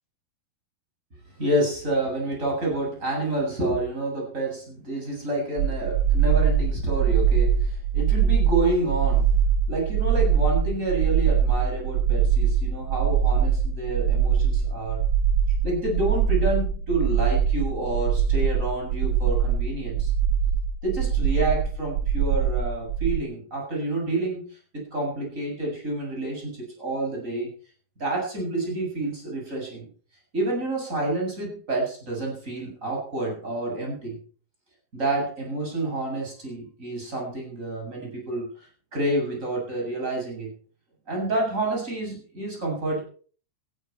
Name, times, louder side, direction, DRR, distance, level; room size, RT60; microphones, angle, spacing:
voice 1, 1.4-9.4 9.7-15.0 15.6-20.1 20.8-27.5 28.0-29.9 30.3-34.2 34.9-40.5 41.1-43.0, right 2 dB, 20° right, -1 dB, 7.9 m, -28 dB
sound 1, 5.6-23.2, right 7 dB, 70° right, 2.6 m, -22 dB
16.5 x 15.5 x 4.6 m, 0.43 s
omnidirectional pair, 4.0 m